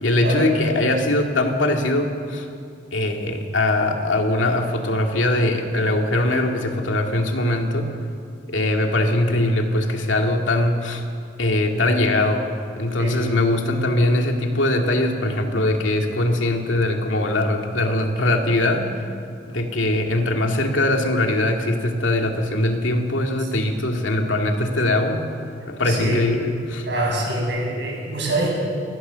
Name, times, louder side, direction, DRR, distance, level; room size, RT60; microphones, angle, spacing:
voice 1, 0.0-2.5 2.9-7.9 8.5-11.0 11.4-12.5 12.8-18.9 19.5-25.2 25.7-26.9, left 1 dB, 85° left, 3 dB, 2.3 m, -21 dB
voice 2, 25.9-26.2 26.8-28.5, right 1 dB, 65° right, -2 dB, 7.5 m, -24 dB
23.5 x 16.5 x 7.0 m, 2.4 s
head